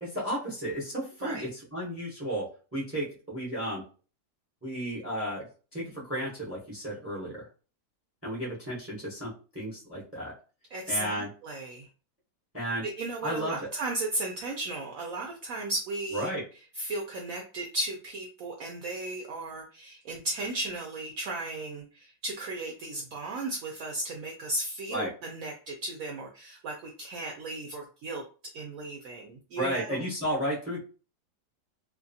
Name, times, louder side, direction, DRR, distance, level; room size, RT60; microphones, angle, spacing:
voice 1, 0.0-3.9 4.6-5.5 5.7-7.5 8.2-10.3 10.9-11.3 12.5-12.8 13.2-13.7 16.1-16.4 24.9-25.1 29.6-30.8, equal, 15° right, -5 dB, 0.5 m, -33 dB
voice 2, 10.7-11.9 12.8-16.3 16.7-28.2 28.5-30.1, right 2 dB, 70° right, 0 dB, 0.8 m, -35 dB
2.8 x 2.3 x 2.6 m, 0.35 s
omnidirectional pair, 1.8 m